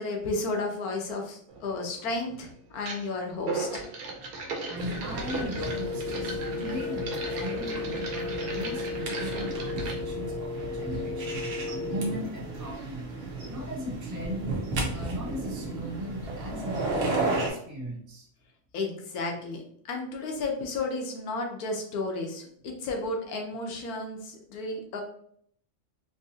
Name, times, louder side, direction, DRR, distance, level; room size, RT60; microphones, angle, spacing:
voice 1, 0.0-3.8 18.7-19.6 19.9-25.0, left 3 dB, 85° left, 2 dB, 1.3 m, -33 dB
sound 1, 1.5-1.6 2.8-3.1 3.4-9.9, right 3 dB, 80° right, 1.2 m, -37 dB
voice 2, 4.7-11.4 11.7-13.1 13.5-14.5 14.8-17.1 17.5-18.3, left 1 dB, 20° right, -3 dB, 0.6 m, -37 dB
sound 2, 4.8-17.5, right 2 dB, 50° right, 1.0 m, -34 dB
Wind instrument woodwind instrument, 5.5-12.3, left 4 dB, 60° left, 0.9 m, -35 dB
3.6 x 2.8 x 2.7 m, 0.64 s
omnidirectional pair, 1.5 m